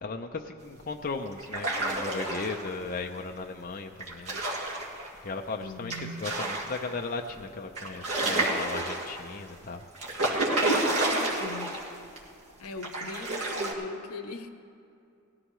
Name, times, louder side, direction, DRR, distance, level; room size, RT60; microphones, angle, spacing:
voice 1, 0.0-4.4 5.2-5.9 6.2-9.8, left 3 dB, 40° left, 3 dB, 0.5 m, -36 dB
sound 1, 1.4-2.7 4.0-5.1 5.9-6.9 7.3-7.4 7.8-9.3 10.0-11.9 12.2-12.3 12.8-13.7, right 2 dB, 85° right, 2.1 m, -29 dB
voice 2, 5.6-6.2 11.4-11.8 12.6-14.5, left 3 dB, 80° left, 8 dB, 0.8 m, -40 dB
18.5 x 13.5 x 3.1 m, 2.5 s
head